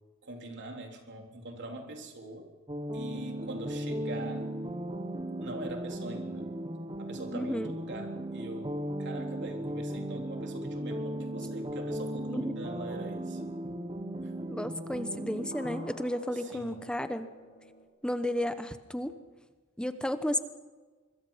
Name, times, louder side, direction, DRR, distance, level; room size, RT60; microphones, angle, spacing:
voice 1, 0.2-2.5 2.9-4.5 5.4-6.5 7.0-13.4 14.2-14.3 16.3-16.8, right 2 dB, 55° right, 2 dB, 3.6 m, -43 dB
sound 1, 2.7-15.9, right 1 dB, 25° right, 1.4 m, -36 dB
voice 2, 7.3-7.7 12.3-12.6 14.5-17.3 18.0-19.1 19.8-20.4, left 1 dB, 5° left, 10 dB, 1.0 m, -33 dB
sound 2, 15.5-17.8, left 1 dB, 45° left, 3.5 m, -51 dB
25.0 x 22.0 x 5.6 m, 1.3 s
head